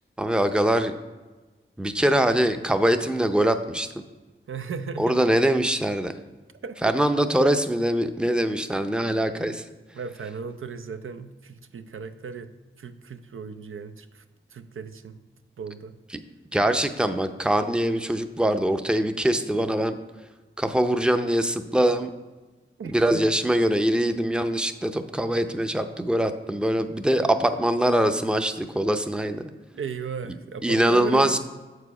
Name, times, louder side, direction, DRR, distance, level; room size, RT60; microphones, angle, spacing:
voice 1, 0.2-0.9 1.8-3.9 5.0-6.1 6.8-9.6 16.5-19.9 20.6-22.1 22.9-29.5 30.6-31.4, right 1 dB, 5° right, 8 dB, 0.5 m, -23 dB
voice 2, 4.5-5.2 6.6-7.0 7.4-7.5 9.9-12.5 12.8-14.2 14.5-15.2 15.6-16.0 22.8-23.3 29.7-31.4, right 6 dB, 75° right, 10 dB, 0.5 m, -36 dB
7.3 x 4.9 x 4.8 m, 1.2 s
wide cardioid pair, 50°, 21 cm